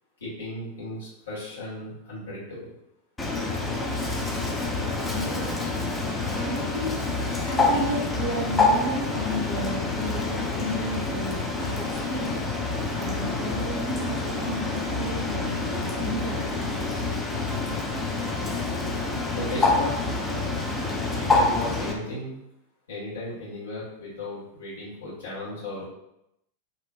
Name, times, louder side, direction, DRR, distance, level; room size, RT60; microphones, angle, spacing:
voice 1, 0.2-2.7 19.3-19.9 21.2-22.4 22.9-25.8, left 1 dB, 65° left, -9 dB, 1.4 m, -35 dB
Bird, 3.2-21.9, left 3 dB, 10° left, 0.4 m, -27 dB
voice 2, 5.1-5.7 6.3-7.0 7.4-12.3 12.9-16.7, equal, 40° left, -8 dB, 1.1 m, -33 dB
2.9 x 2.5 x 2.4 m, 0.84 s
figure-of-eight pair, 90°, 0 cm